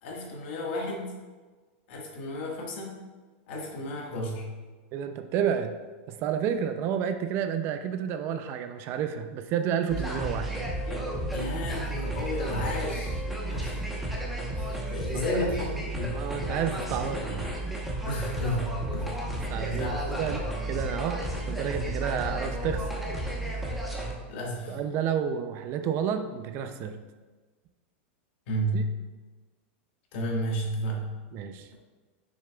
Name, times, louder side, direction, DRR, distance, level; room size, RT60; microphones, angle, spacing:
voice 1, 0.0-1.2 1.9-3.0 3.5-4.5 10.9-13.8 14.6-16.2 18.0-19.2 19.7-20.5 24.3-24.8 28.5-28.8 30.1-31.1, equal, 60° left, 0 dB, 1.6 m, -33 dB
voice 2, 4.9-5.8 6.1-10.6 15.1-15.5 16.1-17.5 19.5-22.8 24.7-27.0 28.7-28.8 31.3-31.7, right 8 dB, 35° right, 9 dB, 0.4 m, -30 dB
sound 1, 9.9-24.1, right 1 dB, ahead, 0.9 m, -32 dB
6.6 x 6.3 x 2.3 m, 1.3 s
supercardioid pair, 150°, 7 cm